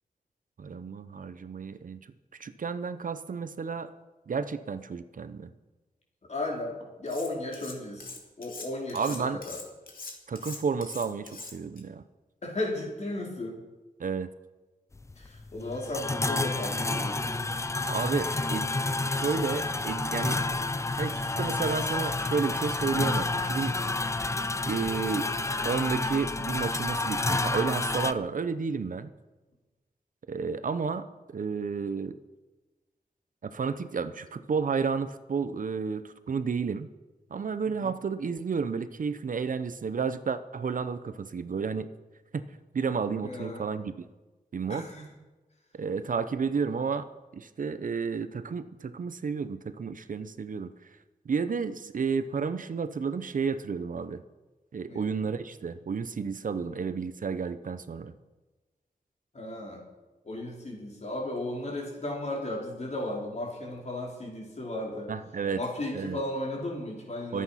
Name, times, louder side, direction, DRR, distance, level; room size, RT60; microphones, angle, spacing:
voice 1, 0.6-2.0 2.4-3.9 4.3-5.5 8.9-9.4 10.3-12.0 14.0-14.3 17.9-18.7 19.1-20.4 21.0-23.7 24.7-25.3 25.6-29.1 30.3-32.2 33.4-36.9 37.3-41.9 42.3-42.4 42.7-44.0 44.5-44.8 45.7-47.1 47.3-50.7 51.2-54.2 54.7-58.1 65.1-65.6 65.9-66.2 67.3-67.4, right 5 dB, 60° right, 12 dB, 0.8 m, -31 dB
voice 2, 6.3-8.1 8.4-9.6 12.4-13.6 15.2-17.3 37.8-37.9 43.2-43.6 44.7-45.1 54.8-55.4 56.6-56.8 59.3-59.8 60.2-65.1 65.5-67.4, left 1 dB, 50° left, -2 dB, 4.5 m, -35 dB
Cutlery silverware, 7.1-7.7 8.0-11.8, left 4 dB, 70° left, 2.8 m, -42 dB
sound 1, 14.9-28.1, left 2 dB, 20° left, 0.5 m, -30 dB
25.0 x 8.5 x 5.8 m, 1.2 s
wide cardioid pair, 140°, 15 cm